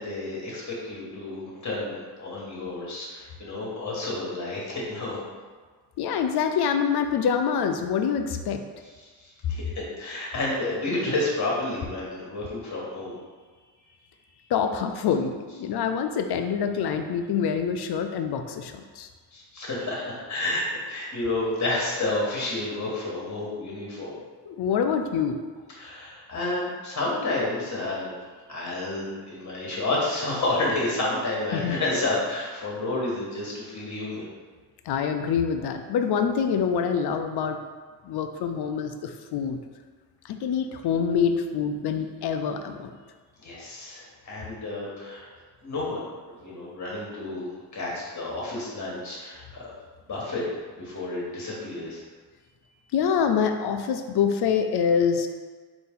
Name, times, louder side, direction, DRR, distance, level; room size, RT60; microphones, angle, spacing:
voice 1, 0.0-5.2 9.0-13.1 19.3-24.2 25.8-28.1 28.5-34.3 43.4-45.2 45.6-47.5 47.7-49.7 50.0-50.4 50.8-52.0, left 2 dB, 40° left, -4 dB, 1.4 m, -30 dB
voice 2, 6.0-8.6 14.5-19.1 24.5-25.4 31.5-31.8 34.9-37.6 38.1-39.6 40.2-42.9 52.9-55.3, left 7 dB, 60° left, 7 dB, 0.5 m, -25 dB
4.0 x 2.9 x 3.7 m, 1.5 s
cardioid pair, 60°, 44 cm